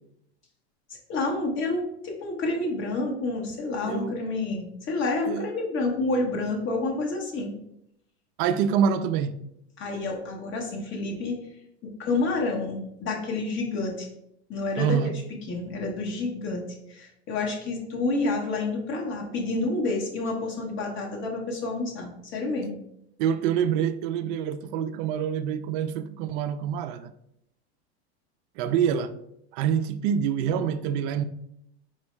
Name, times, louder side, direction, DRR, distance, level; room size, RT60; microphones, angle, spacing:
voice 1, 1.1-7.5 9.8-11.4 11.8-14.1 14.5-15.0 15.5-22.8, left 3 dB, 35° left, 1.2 m, -29 dB
voice 2, 3.8-4.2 5.3-5.5 8.4-9.4 14.8-15.1 23.2-27.1 28.6-29.1 29.5-31.2, right 8 dB, 50° right, 0.4 m, -26 dB
4.4 x 2.1 x 4.5 m
supercardioid pair, 120°, 33 cm